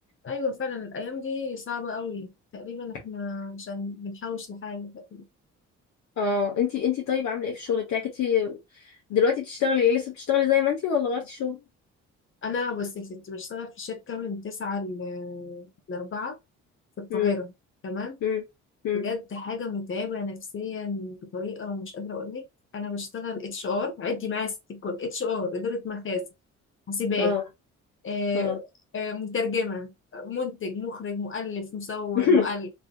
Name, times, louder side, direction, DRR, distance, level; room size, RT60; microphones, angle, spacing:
voice 1, 0.2-5.2 12.4-16.4 17.0-17.5 17.8-18.2 18.9-22.5 22.7-26.3 26.9-27.4 28.0-28.7 28.9-32.7, left 4 dB, 40° left, 0.8 m, -32 dB
voice 2, 6.2-8.6 9.1-11.6 17.1-17.3 18.2-18.4 18.8-19.1 27.2-27.4 28.3-28.6 32.1-32.5, left 7 dB, 70° left, 1.0 m, -24 dB
3.3 x 2.7 x 2.3 m
cardioid pair, 90°, 30 cm